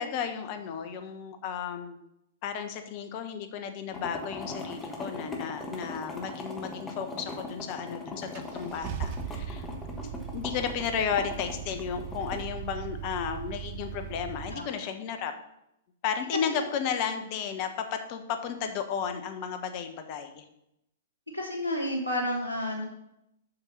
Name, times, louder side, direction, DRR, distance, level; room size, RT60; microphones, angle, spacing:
voice 1, 0.0-2.0 2.4-9.7 10.3-15.3 16.0-20.4, left 7 dB, 40° left, 7 dB, 1.1 m, -33 dB
sound 1, 3.9-12.4, left 2 dB, 15° left, 1.5 m, -40 dB
Car / Engine starting, 7.6-7.7 8.3-14.5, right 7 dB, 40° right, 0.9 m, -39 dB
voice 2, 21.3-22.8, left 1 dB, 90° right, -1 dB, 2.6 m, -31 dB
6.9 x 6.5 x 5.5 m, 0.80 s
figure-of-eight pair, 105°, 0 cm